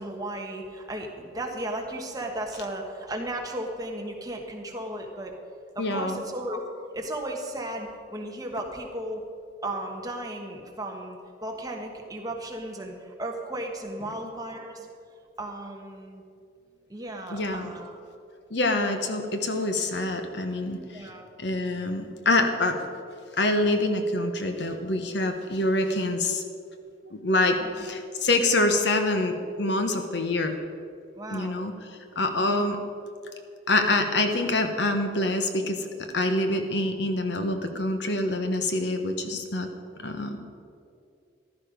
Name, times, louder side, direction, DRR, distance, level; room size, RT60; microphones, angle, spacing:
voice 1, 0.0-5.3 5.7-6.6 6.9-9.2 9.6-14.9 15.4-16.2 16.9-18.0 20.9-21.3 27.6-27.9 31.2-31.7 32.5-32.7, right 1 dB, 20° right, 1 dB, 1.4 m, -35 dB
voice 2, 5.8-6.2 17.3-17.7 18.5-21.1 21.4-22.8 23.4-26.4 27.1-30.5 31.3-31.7 32.1-32.8 33.7-35.9 36.1-39.7 40.0-40.4, left 2 dB, 60° left, 6 dB, 1.1 m, -26 dB
15.0 x 12.0 x 5.2 m, 2.5 s
head